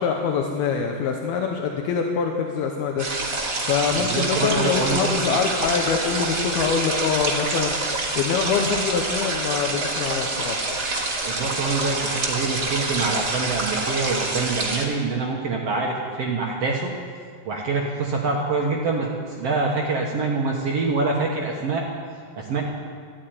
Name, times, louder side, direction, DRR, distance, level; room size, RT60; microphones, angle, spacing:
voice 1, 0.0-3.1 3.6-10.6, left 6 dB, 80° left, 2 dB, 2.8 m, -24 dB
sound 1, 3.0-14.8, right 2 dB, 85° right, 0.6 m, -26 dB
voice 2, 3.9-5.4 11.3-16.9 17.5-19.1 19.4-21.9 22.3-22.6, right 4 dB, 60° right, -1 dB, 1.6 m, -25 dB
14.5 x 8.8 x 9.4 m, 2.1 s
omnidirectional pair, 4.3 m